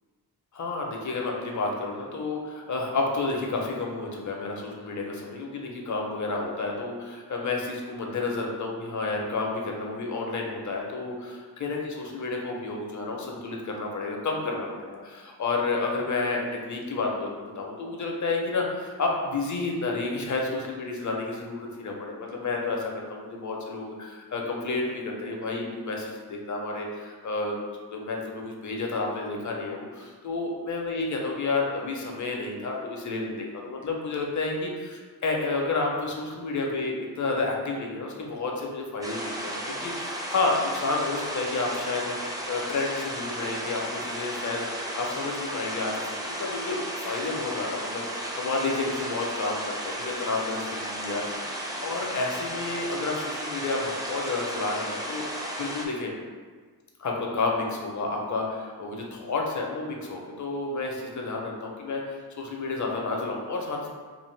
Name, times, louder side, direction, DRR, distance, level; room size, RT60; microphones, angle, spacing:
voice 1, 0.5-27.5 27.9-44.7 45.0-51.2 51.8-56.1 57.0-63.9, left 3 dB, 50° left, 0 dB, 0.6 m, -30 dB
sound 1, 39.0-55.9, right 1 dB, 10° right, 0.5 m, -34 dB
2.6 x 2.5 x 3.2 m, 1.5 s
cardioid pair, 70°, 38 cm